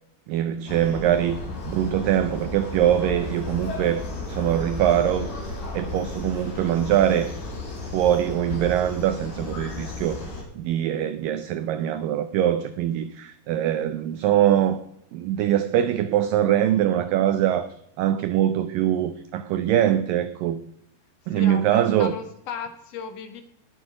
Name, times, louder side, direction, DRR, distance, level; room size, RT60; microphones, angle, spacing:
voice 1, 0.3-1.4 1.7-5.3 5.7-7.4 7.9-14.9 15.1-20.6 21.3-22.1, right 11 dB, 85° right, 1.9 m, -23 dB
sound 1, 0.7-10.4, left 2 dB, 50° left, 4.7 m, -34 dB
voice 2, 21.3-23.4, left 6 dB, 75° left, 1.5 m, -36 dB
18.5 x 7.3 x 4.9 m
omnidirectional pair, 4.7 m